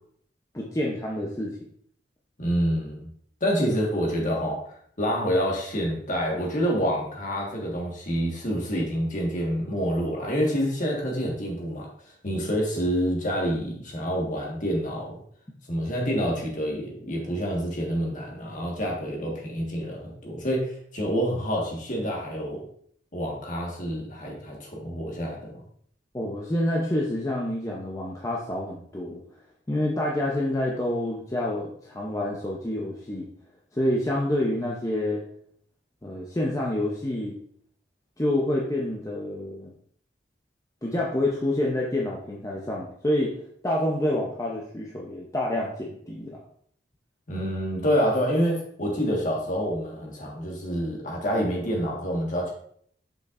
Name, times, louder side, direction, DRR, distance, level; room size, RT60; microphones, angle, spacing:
voice 1, 0.5-1.6 26.1-29.2 29.7-33.3 33.7-35.2 36.0-37.4 38.2-39.7 40.8-43.3 43.6-46.4, left 1 dB, 20° left, -3 dB, 0.7 m, -27 dB
voice 2, 2.4-3.1 3.4-11.9 12.2-15.2 15.7-22.6 23.1-25.6 47.3-52.5, equal, 45° left, -1 dB, 1.6 m, -27 dB
6.8 x 5.4 x 2.5 m, 0.64 s
head